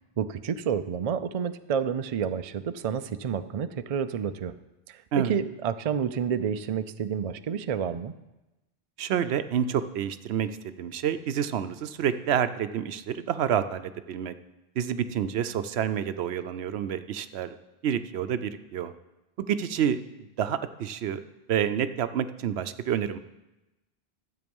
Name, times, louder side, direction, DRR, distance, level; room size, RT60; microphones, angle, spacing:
voice 1, 0.2-4.5 4.9-8.1, right 7 dB, 50° right, 10 dB, 0.4 m, -29 dB
voice 2, 9.0-14.3 14.8-17.5 17.8-18.9 19.4-20.0 20.4-21.2 21.5-23.2, right 9 dB, 80° right, 11 dB, 0.9 m, -28 dB
12.5 x 7.8 x 5.3 m, 1.0 s
omnidirectional pair, 1.1 m